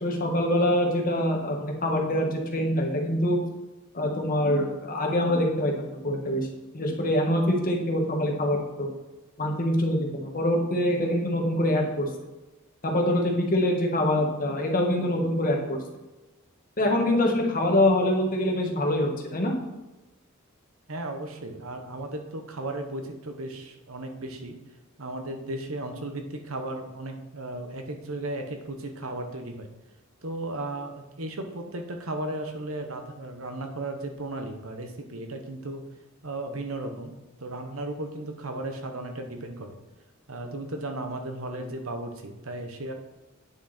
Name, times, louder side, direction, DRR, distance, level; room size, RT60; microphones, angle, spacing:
voice 1, 0.0-3.4 3.9-6.5 6.7-8.9 9.4-12.0 12.8-15.6 16.8-19.5, left 1 dB, 40° left, 1 dB, 1.7 m, -24 dB
voice 2, 20.9-24.5 25.0-29.7 30.2-35.8 36.2-37.1 37.4-39.8 40.3-42.9, right 2 dB, 75° right, 5 dB, 1.2 m, -35 dB
9.5 x 5.9 x 4.3 m, 1.1 s
head